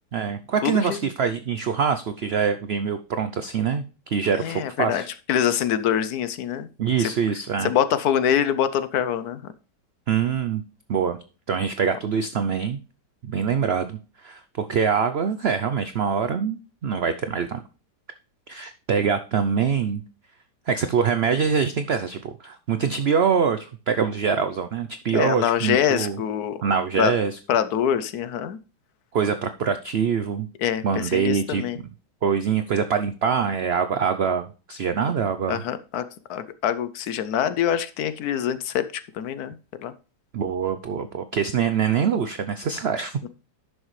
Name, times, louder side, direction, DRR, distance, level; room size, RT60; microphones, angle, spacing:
voice 1, 0.1-5.1 6.8-7.7 10.1-10.6 10.9-11.2 11.5-12.8 13.2-17.6 18.5-20.0 20.7-26.2 26.6-27.4 29.1-30.5 30.8-31.8 32.2-35.6 40.3-43.3, right 6 dB, 80° right, 10 dB, 0.5 m, -24 dB
voice 2, 0.6-1.0 4.4-5.0 5.3-6.7 7.0-7.1 7.6-9.4 25.1-26.6 27.0-27.1 27.5-28.6 30.6-31.8 35.5-36.0 36.3-39.5 39.8-39.9, left 9 dB, 70° left, 13 dB, 1.1 m, -24 dB
11.0 x 6.4 x 3.2 m, 0.34 s
omnidirectional pair, 1.8 m